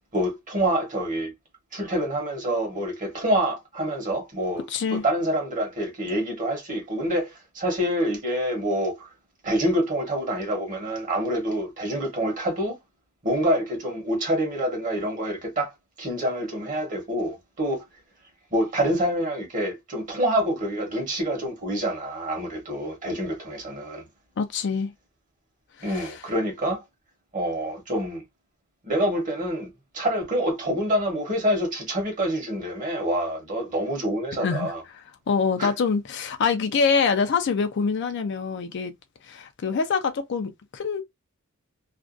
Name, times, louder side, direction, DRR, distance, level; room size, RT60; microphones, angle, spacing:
voice 1, 0.1-1.3 1.7-9.1 9.4-12.8 13.2-15.7 16.0-17.8 18.5-24.0 25.8-26.8 27.3-28.2 28.8-34.8 35.6-35.7, right 1 dB, 40° right, 1.0 m, -26 dB
voice 2, 4.7-5.0 24.4-24.9 25.8-26.3 34.4-38.9 39.2-41.0, left 5 dB, 55° left, 0.4 m, -25 dB
2.5 x 2.2 x 2.4 m
head